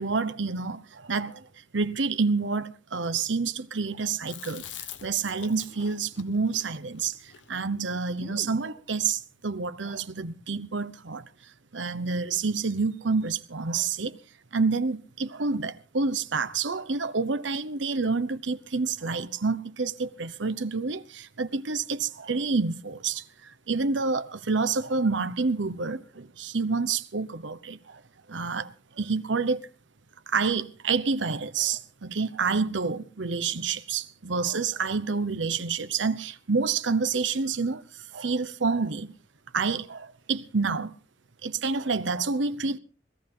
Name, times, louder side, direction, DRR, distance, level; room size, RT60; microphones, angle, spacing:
voice 1, 0.0-1.5 1.7-4.6 5.0-11.2 11.7-14.2 14.5-28.0 28.3-29.7 30.3-39.1 39.5-41.0 41.4-42.8, right 4 dB, 85° right, 0.9 m, -28 dB
Chewing mastication, 4.3-8.7, left 7 dB, 85° left, 1.3 m, -45 dB
20.5 x 14.5 x 3.8 m
head